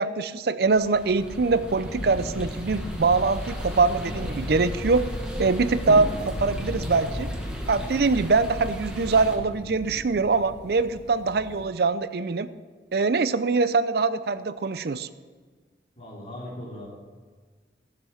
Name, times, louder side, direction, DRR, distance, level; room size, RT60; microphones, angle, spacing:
voice 1, 0.0-5.0 5.4-7.3 7.7-12.5 12.9-15.1, right 4 dB, 60° right, 13 dB, 0.5 m, -23 dB
sound 1, 0.6-9.4, equal, 5° right, 1.5 m, -35 dB
sound 2, 1.2-11.7, left 1 dB, 85° left, 1.6 m, -39 dB
voice 2, 16.0-16.9, left 1 dB, 35° left, -5 dB, 3.3 m, -38 dB
15.0 x 7.4 x 5.8 m, 1.5 s
head